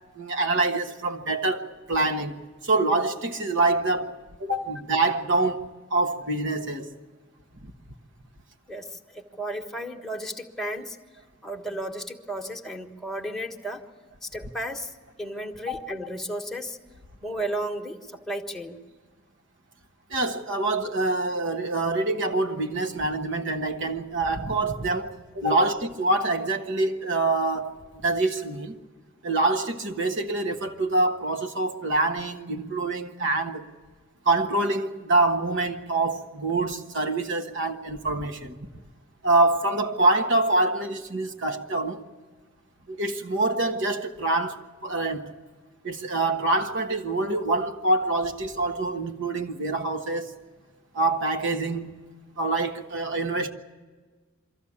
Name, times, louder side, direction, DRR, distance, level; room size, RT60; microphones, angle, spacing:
voice 1, 0.1-2.4 2.6-4.1 4.4-6.9 7.6-7.7 15.7-15.8 20.1-28.8 29.2-33.6 34.2-38.6 39.2-42.0 42.9-45.3 45.8-50.3 50.9-51.9 52.4-53.5, right 2 dB, 65° right, 1.3 m, -25 dB
voice 2, 8.7-11.0 11.4-13.8 14.2-14.9 15.2-16.8 17.2-18.0 18.3-18.8 25.5-25.7, right 1 dB, ahead, 1.4 m, -33 dB
23.5 x 14.5 x 8.7 m
head